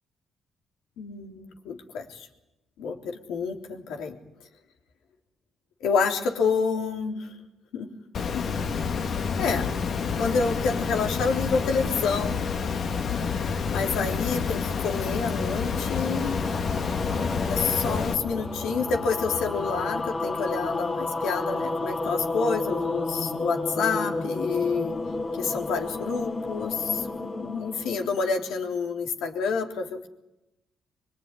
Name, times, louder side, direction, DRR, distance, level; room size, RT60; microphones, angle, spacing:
voice 1, 1.0-2.3 2.8-4.2 5.8-7.3 7.7-7.9 8.3-8.5 9.4-9.7 10.2-12.4 13.7-16.4 17.5-24.9 25.3-30.0, left 5 dB, 85° left, 3 dB, 3.5 m, -28 dB
Water, 8.1-18.1, left 5 dB, 55° left, 1.7 m, -28 dB
sound 1, 14.3-28.7, left 2 dB, 30° left, 2.5 m, -32 dB
23.5 x 23.5 x 9.9 m, 0.92 s
cardioid pair, 90°, 0 cm